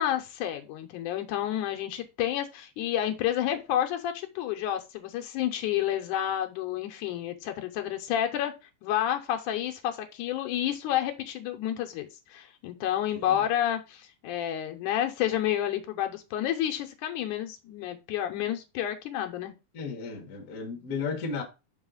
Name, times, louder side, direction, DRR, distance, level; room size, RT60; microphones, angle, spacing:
voice 1, 0.0-8.5 8.8-19.5, left 11 dB, 80° left, 2.2 m, -30 dB
voice 2, 13.1-13.4 19.7-21.4, left 5 dB, 45° left, 1.1 m, -34 dB
5.6 x 5.5 x 3.7 m
omnidirectional pair, 3.7 m